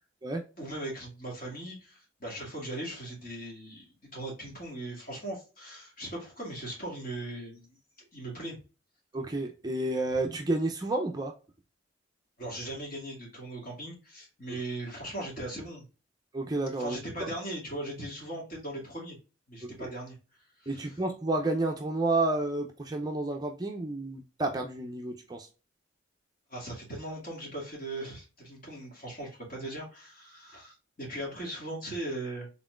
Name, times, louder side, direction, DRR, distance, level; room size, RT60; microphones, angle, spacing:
voice 1, 0.6-7.7 8.1-8.6 12.4-15.9 16.8-19.2 19.5-20.2 20.6-21.0 26.5-32.5, right 1 dB, 45° left, 2.1 m, -39 dB
voice 2, 9.1-11.3 16.3-17.0 19.6-19.9 20.7-25.5, right 2 dB, 20° right, 0.5 m, -30 dB
4.1 x 3.7 x 2.3 m
head